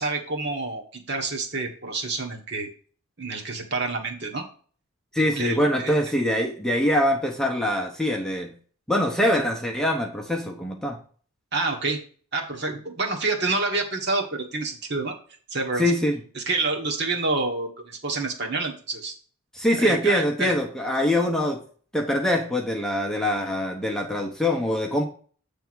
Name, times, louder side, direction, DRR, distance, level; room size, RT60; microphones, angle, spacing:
voice 1, 0.0-2.7 3.2-4.4 5.2-5.9 11.5-12.0 12.3-15.1 15.5-15.8 16.3-19.1 19.7-20.5, right 3 dB, 50° right, 2 dB, 1.4 m, -28 dB
voice 2, 5.1-8.5 8.9-11.0 15.8-16.2 19.5-21.6 21.9-25.0, left 1 dB, 5° left, 1 dB, 0.8 m, -24 dB
8.5 x 3.5 x 6.1 m, 0.44 s
head